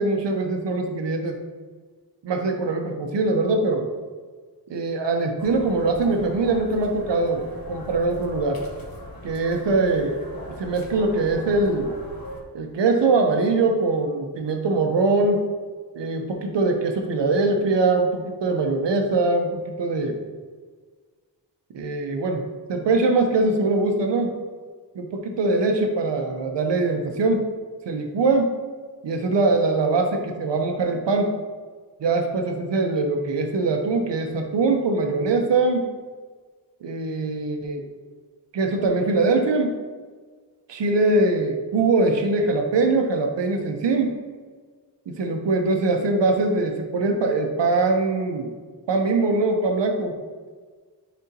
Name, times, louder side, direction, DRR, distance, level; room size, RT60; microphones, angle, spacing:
voice 1, 0.0-1.4 2.2-3.9 4.7-8.6 9.2-10.1 10.6-11.9 12.5-15.4 15.9-20.2 21.7-22.4 22.7-24.3 24.9-27.5 27.9-28.5 29.0-31.3 32.0-35.9 36.8-37.9 38.5-39.8 40.7-44.2 45.1-48.5 48.9-50.2, right 3 dB, 80° right, 3 dB, 1.0 m, -22 dB
sound 1, 5.4-12.4, left 1 dB, 55° left, 1.6 m, -40 dB
9.2 x 4.3 x 2.9 m, 1.5 s
cardioid pair, 60°, 42 cm